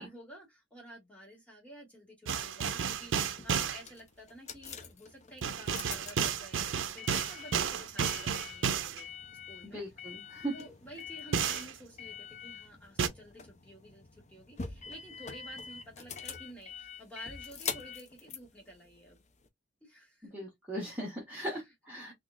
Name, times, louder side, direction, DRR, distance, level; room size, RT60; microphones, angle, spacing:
voice 1, 0.0-9.1 9.5-9.8 10.5-19.2 19.8-20.3 22.0-22.1, equal, 5° left, 1.8 m, -51 dB
sound 1, 2.3-3.8 5.4-9.0 11.3-11.7 13.0-13.1, right 7 dB, 80° right, 0.5 m, -32 dB
sound 2, 3.0-19.5, left 6 dB, 35° left, 0.5 m, -45 dB
voice 2, 9.7-10.5 20.3-22.1, right 1 dB, 10° right, 1.3 m, -38 dB
3.8 x 2.8 x 2.3 m
head